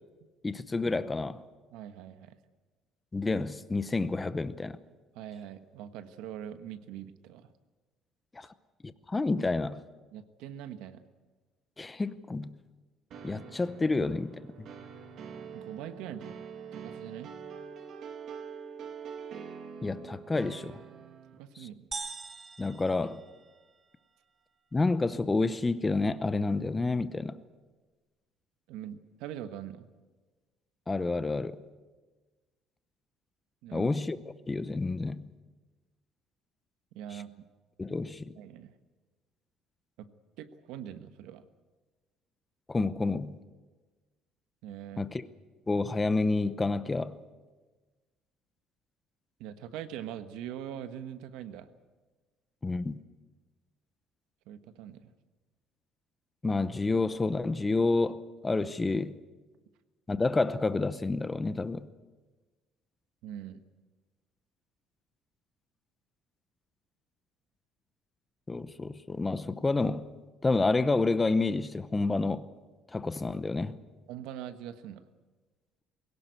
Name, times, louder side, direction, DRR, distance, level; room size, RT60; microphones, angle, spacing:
voice 1, 0.4-1.4 3.1-4.8 8.3-8.5 8.8-9.8 11.8-12.6 13.2-14.7 19.8-20.8 22.6-23.2 24.7-27.4 30.9-31.6 33.7-34.2 34.5-35.3 37.8-38.4 42.7-43.4 45.0-45.2 45.7-47.2 52.6-53.0 56.4-59.1 60.1-61.9 68.5-70.1 70.4-72.5 72.9-73.8, left 3 dB, 15° left, 0.7 m, -29 dB
voice 2, 1.7-2.4 5.1-7.5 8.4-8.5 10.1-11.0 15.5-17.3 21.4-21.9 28.7-29.9 33.6-33.9 36.9-37.3 38.4-38.7 40.0-40.1 40.4-41.4 44.6-45.1 49.4-51.7 54.5-55.1 63.2-63.6 74.1-75.1, right 10 dB, 85° right, 1.3 m, -42 dB
sound 1, 13.1-21.4, right 6 dB, 50° right, 2.2 m, -44 dB
sound 2, 21.9-23.9, right 4 dB, 25° right, 1.0 m, -42 dB
21.0 x 18.0 x 8.2 m
cardioid pair, 145°, 0 cm